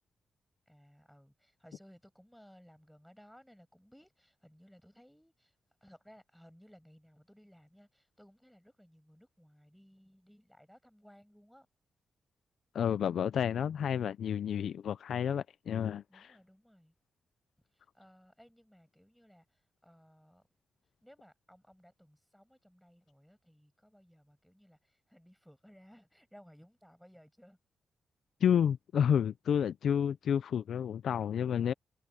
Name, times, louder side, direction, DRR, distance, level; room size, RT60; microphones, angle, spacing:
voice 1, 0.7-11.7 16.1-16.9 17.7-20.4 21.0-27.6, equal, ahead, 6.9 m, -60 dB
voice 2, 12.7-16.2 28.4-31.7, left 8 dB, 70° left, 0.5 m, -30 dB
wide cardioid pair, 135°, 0 cm